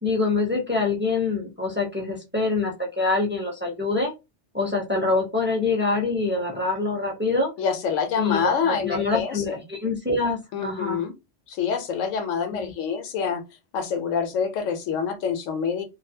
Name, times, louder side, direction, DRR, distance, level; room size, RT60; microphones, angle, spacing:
voice 1, 0.0-4.1 4.5-7.5 8.2-11.0 12.5-12.7, left 3 dB, 15° right, 0 dB, 0.5 m, -25 dB
voice 2, 7.6-9.6 10.5-11.1 11.5-13.4 13.7-15.8, left 6 dB, 85° left, 8 dB, 1.0 m, -26 dB
2.5 x 2.3 x 2.7 m, 0.24 s
omnidirectional pair, 1.3 m